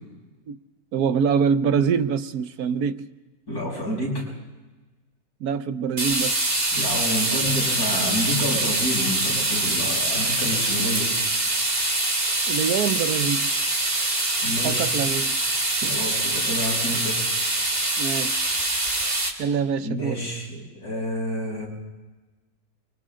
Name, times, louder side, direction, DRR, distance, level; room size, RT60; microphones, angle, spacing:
voice 1, 0.9-3.1 5.4-6.4 12.5-13.5 14.6-15.4 15.8-16.0 18.0-18.4 19.4-20.2, right 6 dB, 80° right, 1.3 m, -25 dB
voice 2, 3.5-4.3 6.7-11.1 14.4-14.9 15.9-17.3 19.8-21.7, equal, 75° left, 7.5 m, -29 dB
sound 1, 6.0-19.3, right 2 dB, 35° right, 2.7 m, -24 dB
29.5 x 24.5 x 3.8 m
omnidirectional pair, 1.6 m